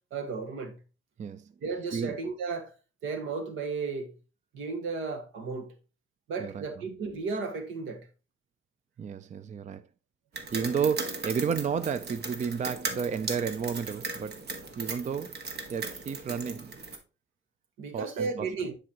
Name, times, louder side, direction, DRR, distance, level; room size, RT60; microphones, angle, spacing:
voice 1, 0.1-0.8 1.6-2.7 3.0-4.1 4.5-5.7 6.3-8.1 17.8-18.7, right 4 dB, 80° right, 1.7 m, -34 dB
voice 2, 1.2-1.5 1.9-2.1 6.4-6.7 9.0-9.8 10.5-14.5 14.8-15.4 15.7-16.7 17.9-18.5, right 6 dB, 35° right, 0.5 m, -32 dB
sound 1, 10.3-17.0, right 3 dB, 55° right, 1.7 m, -37 dB
10.0 x 4.9 x 2.9 m
cardioid pair, 90°, 20 cm